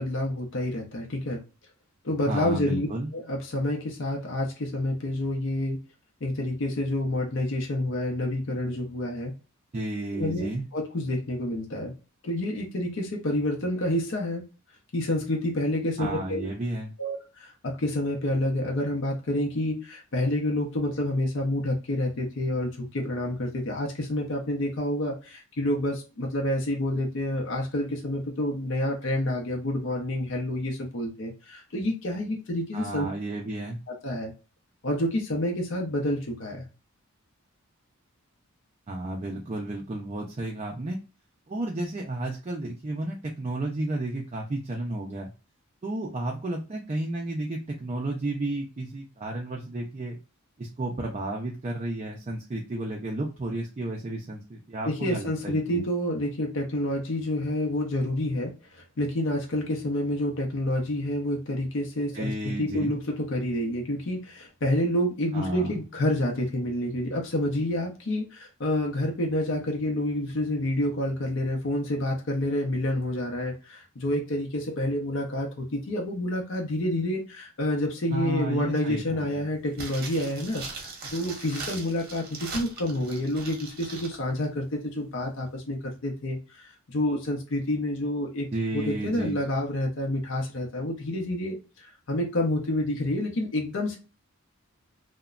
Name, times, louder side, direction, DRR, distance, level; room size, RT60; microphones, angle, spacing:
voice 1, 0.0-1.4 2.0-2.9 3.1-5.8 6.2-9.3 10.1-10.5 10.7-11.9 12.2-14.4 14.9-16.5 17.0-33.1 34.0-34.3 34.8-36.7 54.9-88.5 88.7-94.0, left 1 dB, 55° left, 0 dB, 0.6 m, -28 dB
voice 2, 2.3-3.1 9.7-10.7 16.0-16.9 32.7-33.8 38.9-41.0 41.5-45.3 45.8-50.2 50.6-55.8 62.1-62.9 65.3-65.7 78.1-79.5 88.5-89.4, right 2 dB, 30° right, 0 dB, 0.4 m, -32 dB
sound 1, 79.7-84.2 84.4-84.5, right 3 dB, 45° right, 0.8 m, -40 dB
2.9 x 2.1 x 2.3 m, 0.33 s
head